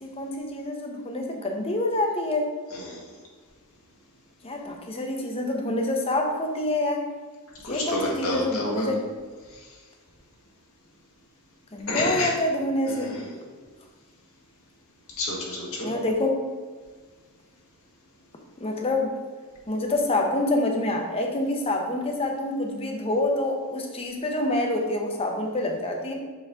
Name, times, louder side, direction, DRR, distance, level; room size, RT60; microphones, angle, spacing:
voice 1, 0.0-2.5 4.4-7.0 7.7-9.0 11.7-13.2 15.8-16.4 18.6-19.1 19.7-26.1, left 1 dB, 25° left, 2 dB, 0.8 m, -27 dB
voice 2, 2.7-3.1 7.6-8.9 9.6-9.7 11.9-12.4 12.9-13.4 15.2-15.9, left 1 dB, 75° left, -3 dB, 1.6 m, -30 dB
5.6 x 5.2 x 3.6 m, 1.5 s
head